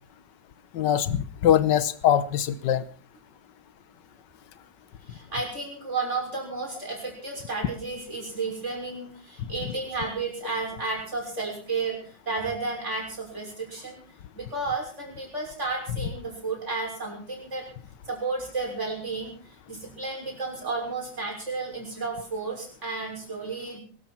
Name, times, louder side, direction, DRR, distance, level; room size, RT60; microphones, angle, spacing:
voice 1, 0.7-2.8, left 10 dB, 75° left, 15 dB, 1.6 m, -22 dB
voice 2, 5.1-12.0 12.3-14.0 14.3-17.6 18.1-19.3 19.7-23.8, right 3 dB, 40° right, 0 dB, 6.7 m, -32 dB
23.0 x 13.0 x 4.5 m, 0.41 s
omnidirectional pair, 2.0 m